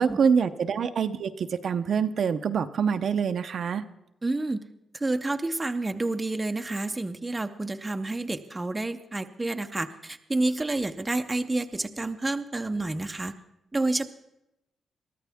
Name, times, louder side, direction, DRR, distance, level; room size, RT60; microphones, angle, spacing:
voice 1, 0.0-3.8, right 6 dB, 55° right, 9 dB, 0.7 m, -25 dB
voice 2, 4.2-4.7 4.9-13.3 13.7-14.1, right 2 dB, 15° right, 8 dB, 0.6 m, -29 dB
23.0 x 13.5 x 3.5 m, 0.88 s
wide cardioid pair, 145°, 0 cm